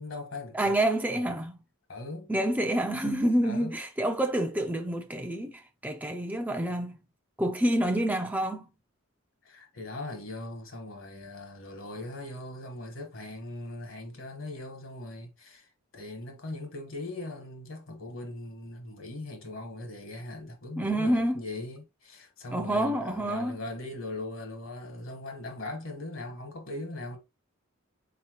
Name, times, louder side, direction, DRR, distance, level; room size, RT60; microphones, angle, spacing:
voice 1, 0.0-0.8 1.1-1.4 1.9-2.3 3.4-3.8 9.4-27.2, left 2 dB, 65° left, 1.3 m, -40 dB
voice 2, 0.5-1.6 2.3-7.0 7.4-8.7 20.8-21.4 22.5-23.6, right 1 dB, 10° right, 0.4 m, -28 dB
4.3 x 2.9 x 2.9 m
head